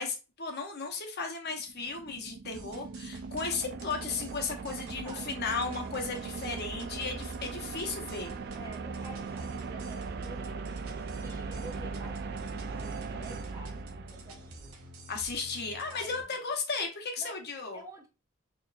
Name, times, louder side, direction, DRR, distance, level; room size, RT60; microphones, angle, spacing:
voice 1, 0.0-8.3 15.1-17.8, left 4 dB, 50° left, 0.9 m, -35 dB
sound 1, 1.5-14.7, right 4 dB, 50° right, 0.3 m, -39 dB
sound 2, 2.5-16.2, right 1 dB, 85° right, 0.7 m, -49 dB
voice 2, 4.5-5.4 8.5-14.7 15.9-16.5 17.2-17.4 17.7-18.1, right 1 dB, 15° right, 0.8 m, -50 dB
4.3 x 3.0 x 2.4 m
head